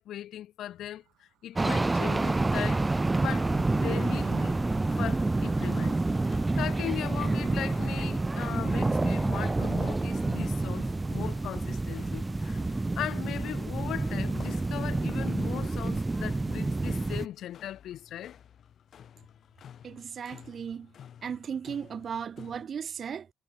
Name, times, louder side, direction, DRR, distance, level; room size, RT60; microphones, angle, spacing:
voice 1, 0.0-2.9 3.1-4.6 5.0-6.0 6.6-12.6 13.0-18.4, left 12 dB, 75° left, 0.5 m, -38 dB
Train, 0.7-14.0 14.3-14.4, right 15 dB, 90° right, 3.5 m, -56 dB
sound 1, 1.6-17.3, right 2 dB, 20° right, 0.7 m, -28 dB
sound 2, 4.1-22.7, left 9 dB, 60° left, 2.9 m, -53 dB
voice 2, 19.8-20.9 21.2-23.3, right 7 dB, 50° right, 1.4 m, -36 dB
cardioid pair, 90°, 0 cm